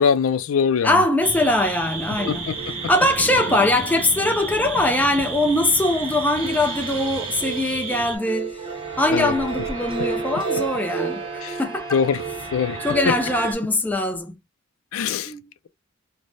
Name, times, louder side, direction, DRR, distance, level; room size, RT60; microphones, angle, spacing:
voice 1, 0.0-1.0 2.3-2.7 9.1-9.3 11.4-11.6 11.9-12.2 12.5-12.8 13.1-13.2 14.9-15.3, left 6 dB, 75° left, 0.4 m, -22 dB
voice 2, 0.8-2.4 2.9-8.6 9.0-12.0 12.8-14.4 15.3-15.5, left 1 dB, 10° left, 0.4 m, -22 dB
sound 1, 1.2-8.2, right 4 dB, 65° right, 0.8 m, -32 dB
sound 2, 1.9-13.5, right 5 dB, 25° right, 0.8 m, -32 dB
3.3 x 2.1 x 2.6 m
head